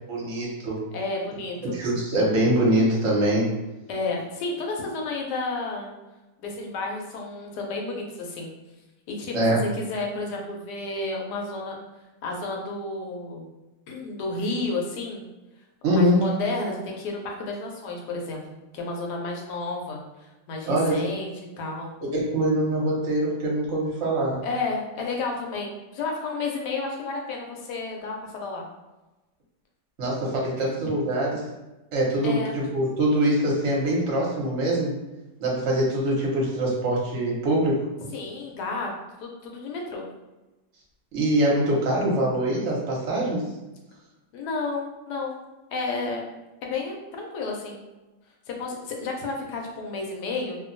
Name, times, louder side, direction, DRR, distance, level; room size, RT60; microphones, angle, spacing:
voice 1, 0.1-0.8 1.7-3.5 9.3-9.6 15.8-16.2 20.7-21.0 22.0-24.4 30.0-31.5 31.9-34.9 35.4-37.8 41.1-43.5, right 1 dB, 50° right, -3 dB, 0.9 m, -23 dB
voice 2, 0.9-1.7 3.9-5.9 6.4-8.5 9.1-11.8 12.2-13.5 13.9-15.2 15.9-18.4 18.7-21.3 21.6-22.0 24.4-28.6 30.7-30.9 32.2-32.5 38.1-38.9 39.2-40.0 44.3-45.4 45.7-46.2 46.6-47.8 48.5-50.6, left 3 dB, 75° left, 0 dB, 1.1 m, -31 dB
2.8 x 2.2 x 2.5 m, 1.1 s
omnidirectional pair, 1.9 m